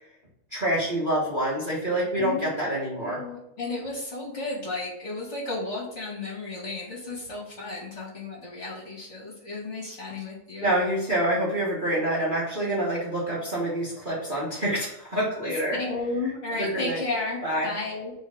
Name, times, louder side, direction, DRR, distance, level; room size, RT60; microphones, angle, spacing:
voice 1, 0.5-3.2 10.6-15.8 16.2-17.0 17.4-17.7, right 1 dB, 90° right, -6 dB, 0.4 m, -27 dB
voice 2, 2.2-10.7 15.4-18.1, left 2 dB, 25° left, -5 dB, 2.0 m, -33 dB
4.5 x 4.4 x 4.9 m, 0.81 s
omnidirectional pair, 3.5 m